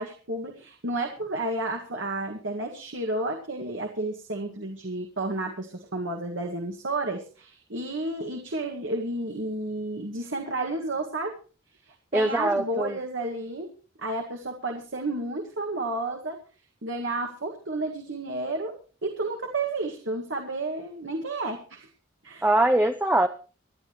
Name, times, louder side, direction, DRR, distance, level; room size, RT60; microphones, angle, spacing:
voice 1, 0.0-11.3 11.8-13.7 14.0-16.4 16.8-18.7 19.0-21.9 22.2-22.5, right 2 dB, 65° right, 2 dB, 1.9 m, -31 dB
voice 2, 12.1-13.0 22.4-23.3, right 1 dB, 10° right, 7 dB, 0.6 m, -22 dB
26.0 x 10.5 x 3.1 m, 0.37 s
head